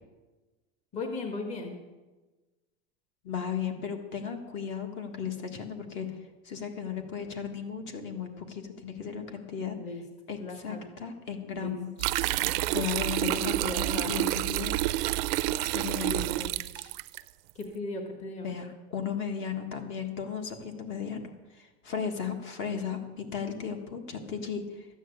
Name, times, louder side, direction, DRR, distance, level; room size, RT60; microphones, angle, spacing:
voice 1, 0.9-1.8 9.7-10.0 10.4-10.8 11.5-11.7 13.0-14.3 16.0-16.6 17.5-18.5, left 2 dB, 25° left, 3 dB, 1.4 m, -37 dB
voice 2, 3.2-9.8 10.3-11.9 12.7-14.7 15.7-16.2 16.7-16.9 18.4-24.9, left 7 dB, 40° left, 5 dB, 1.6 m, -35 dB
sound 1, 12.0-17.2, right 16 dB, 65° right, 0.5 m, -29 dB
13.0 x 9.2 x 8.0 m, 1.2 s
cardioid pair, 175°, 30 cm